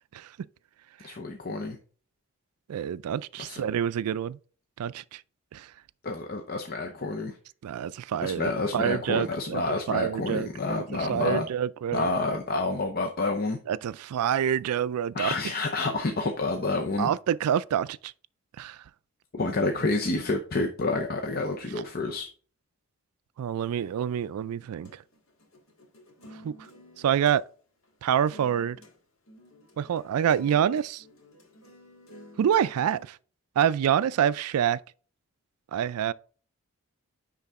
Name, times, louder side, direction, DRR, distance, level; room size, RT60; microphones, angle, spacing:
voice 1, 1.0-1.8 3.4-3.7 6.0-7.4 8.2-11.5 11.9-13.6 15.1-17.1 19.3-22.3, left 3 dB, 40° left, 0.7 m, -29 dB
voice 2, 2.7-4.4 4.8-5.2 5.5-5.7 7.6-12.1 13.7-15.3 17.0-18.1 18.6-18.8 23.4-24.9 26.4-26.6 27.0-27.4 28.0-28.8 29.8-31.0 32.4-33.2 33.6-34.8 35.7-36.1, right 9 dB, 85° right, 0.3 m, -27 dB
sound 1, 23.7-27.4 27.8-27.9 28.3-29.0 29.3-33.1, left 1 dB, 65° left, 1.8 m, -52 dB
9.8 x 3.8 x 3.5 m
head